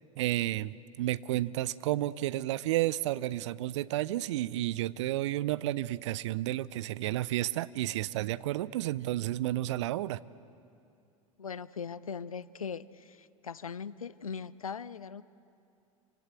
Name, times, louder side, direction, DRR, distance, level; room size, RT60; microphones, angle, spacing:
voice 1, 0.2-10.2, right 15 dB, 55° right, 19 dB, 0.6 m, -31 dB
voice 2, 11.4-15.2, left 6 dB, 80° left, 18 dB, 0.6 m, -40 dB
27.5 x 26.0 x 8.2 m, 2.6 s
figure-of-eight pair, 80°, 18 cm